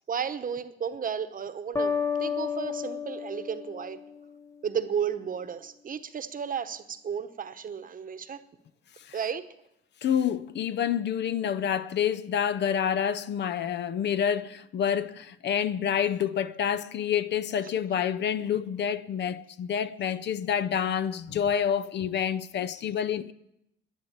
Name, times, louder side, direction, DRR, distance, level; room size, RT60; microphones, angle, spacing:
voice 1, 0.1-4.0 4.6-8.4 9.1-9.5, right 7 dB, 45° right, 1.0 m, -33 dB
sound 1, 1.8-4.6, left 6 dB, 15° left, 0.8 m, -32 dB
voice 2, 10.0-23.3, left 8 dB, 60° left, 0.6 m, -28 dB
11.0 x 10.0 x 8.7 m
cardioid pair, 90°, 20 cm